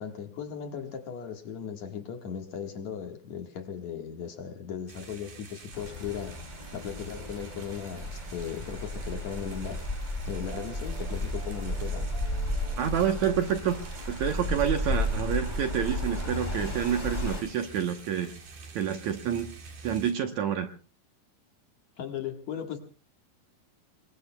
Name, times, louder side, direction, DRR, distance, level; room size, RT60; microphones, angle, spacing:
voice 1, 0.0-6.4 6.7-9.8 10.3-12.1 22.0-22.8, left 8 dB, 55° left, 2.6 m, -37 dB
sound 1, 4.9-20.1, right 4 dB, 85° right, 5.0 m, -48 dB
sound 2, 5.7-17.4, left 1 dB, 15° left, 2.3 m, -33 dB
sound 3, 6.6-13.4, right 5 dB, 40° right, 4.3 m, -52 dB
voice 2, 12.8-13.8 14.1-18.3 18.7-19.5 19.8-20.7, right 9 dB, 65° right, 1.9 m, -28 dB
27.5 x 22.5 x 2.2 m
omnidirectional pair, 4.1 m